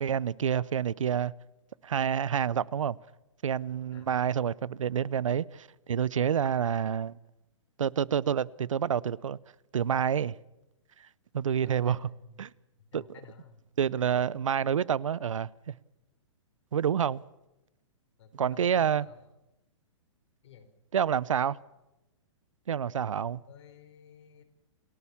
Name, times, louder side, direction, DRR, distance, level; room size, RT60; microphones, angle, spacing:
voice 1, 0.0-1.3 1.8-3.0 3.4-7.2 7.8-9.4 9.7-10.4 11.3-12.0 12.4-12.5 12.9-13.0 13.8-15.7 16.7-17.2 18.3-19.1 20.9-21.6 22.7-23.4, right 8 dB, 90° right, 0.7 m, -28 dB
voice 2, 11.6-12.5 12.8-13.6 18.2-19.2 20.4-20.7 23.2-24.4, left 8 dB, 60° left, 4.4 m, -52 dB
28.5 x 14.0 x 7.2 m
hypercardioid pair, 145°, 16 cm